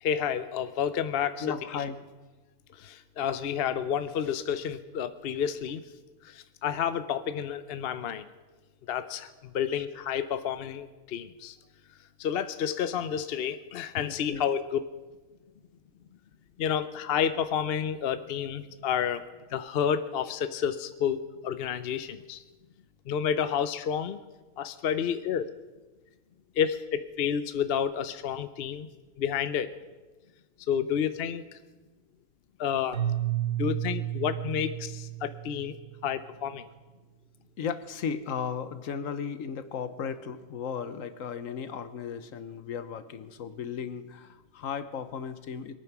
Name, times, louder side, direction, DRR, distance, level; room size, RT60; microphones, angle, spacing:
voice 1, 0.0-1.8 2.8-5.8 6.2-8.2 8.9-11.6 12.2-14.8 16.6-19.2 19.5-22.4 23.1-24.2 24.6-25.5 26.6-28.9 29.2-29.7 30.7-31.6 32.6-33.0 33.6-35.8 36.0-36.7, left 8 dB, 55° left, 11 dB, 0.8 m, -30 dB
voice 2, 1.4-2.0 9.7-9.9 14.0-14.4 37.6-45.7, left 6 dB, 75° left, 12 dB, 1.3 m, -35 dB
Keyboard (musical), 32.9-36.0, right 12 dB, 85° right, 1.6 m, -32 dB
22.5 x 9.4 x 6.0 m, 1.2 s
omnidirectional pair, 1.4 m